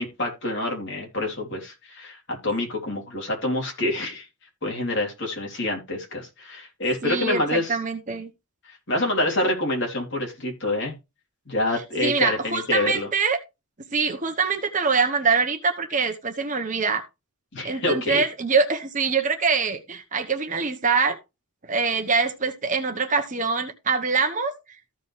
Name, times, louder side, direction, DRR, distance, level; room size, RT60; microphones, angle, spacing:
voice 1, 0.0-4.3 4.6-7.7 8.9-10.9 11.5-13.1 17.5-18.2, left 1 dB, 55° left, 3.4 m, -27 dB
voice 2, 7.0-8.3 12.0-13.4 13.9-17.0 17.6-21.2 21.6-24.5, right 4 dB, 35° right, 1.1 m, -24 dB
14.5 x 5.2 x 3.3 m
head